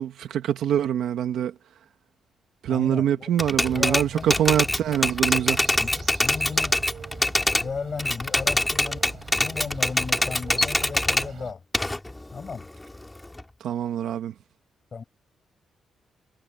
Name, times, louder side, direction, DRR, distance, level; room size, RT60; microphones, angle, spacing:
voice 1, 0.0-1.5 2.6-5.6 13.6-14.3, right 10 dB, 90° right, 1.3 m, -24 dB
voice 2, 2.7-3.3 3.7-4.3 5.8-6.8 7.2-11.6 12.3-12.7 14.9-15.0, left 5 dB, 35° left, 5.7 m, -35 dB
Typewriter, 3.4-7.7 8.0-11.3 11.7-13.4, left 1 dB, 10° left, 3.3 m, -24 dB
sound 1, 3.5-11.5, right 7 dB, 45° right, 7.1 m, -42 dB
wide cardioid pair, 155°, 0 cm